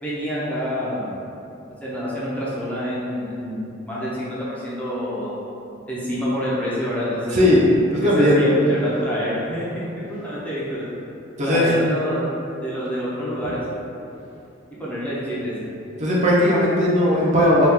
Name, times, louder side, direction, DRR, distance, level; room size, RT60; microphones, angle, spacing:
voice 1, 0.0-1.2 1.8-5.5 5.9-7.5 7.9-10.9 11.4-12.3 12.6-13.6 14.8-15.7, equal, 5° left, -9 dB, 0.5 m, -27 dB
voice 2, 7.9-8.4 11.4-11.7 16.0-17.7, left 1 dB, 35° right, -6 dB, 0.5 m, -17 dB
2.9 x 2.2 x 3.5 m, 2.7 s
head